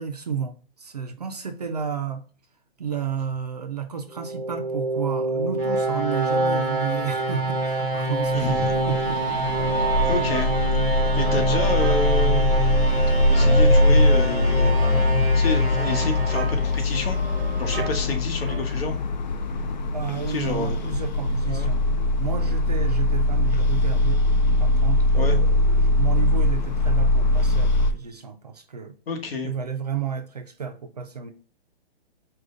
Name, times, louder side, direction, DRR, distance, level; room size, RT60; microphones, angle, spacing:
voice 1, 0.0-2.2 2.8-9.4 19.9-21.8 22.2-24.2 24.6-28.9 29.4-31.3, right 7 dB, 40° right, 0.4 m, -31 dB
sound 1, 4.1-17.1, right 2 dB, 10° left, 1.0 m, -26 dB
voice 2, 8.3-8.7 10.0-10.6 11.1-12.7 13.3-14.8 15.3-17.2 17.6-19.0 20.3-20.9 21.5-22.0 25.2-25.4 29.1-29.5, left 3 dB, 65° left, 1.3 m, -29 dB
sound 2, 8.3-27.9, left 1 dB, 45° left, 0.4 m, -21 dB
sound 3, 9.5-19.0, right 5 dB, 80° right, 0.7 m, -37 dB
4.9 x 2.3 x 3.7 m
hypercardioid pair, 175°, 32 cm